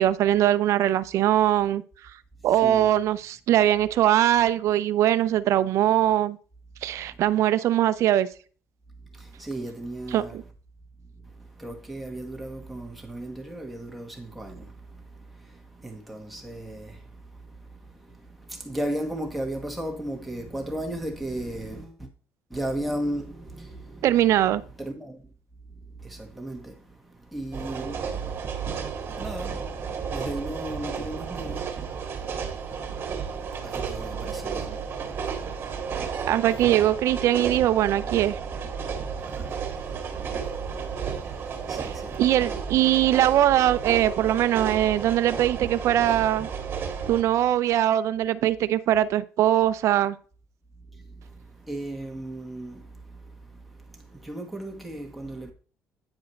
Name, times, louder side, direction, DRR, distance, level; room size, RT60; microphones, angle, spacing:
voice 1, 0.0-1.8 2.4-6.4 6.8-8.3 10.1-10.4 24.0-24.6 36.3-38.4 42.2-46.5 47.1-50.2, right 12 dB, 65° right, 0.6 m, -21 dB
voice 2, 2.4-3.0 6.9-7.2 9.0-10.5 11.0-22.1 22.5-25.3 25.7-36.7 39.1-42.2 50.7-55.5, right 1 dB, ahead, 1.9 m, -37 dB
sound 1, 27.5-47.2, right 6 dB, 40° right, 1.8 m, -32 dB
9.6 x 4.8 x 4.5 m
cardioid pair, 125°, 5 cm